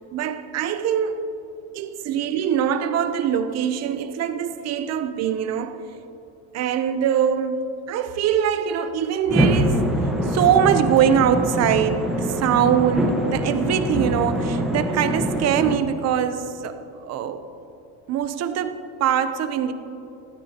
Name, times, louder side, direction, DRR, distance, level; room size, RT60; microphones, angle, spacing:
voice 1, 0.1-1.3 1.7-5.8 6.5-9.9 10.2-16.7 17.0-17.4 18.1-19.7, right 9 dB, 40° right, 10 dB, 0.8 m, -23 dB
sound 1, 9.3-15.7, equal, ahead, 1.2 m, -24 dB
17.5 x 13.5 x 2.9 m, 3.0 s
cardioid pair, 130°, 39 cm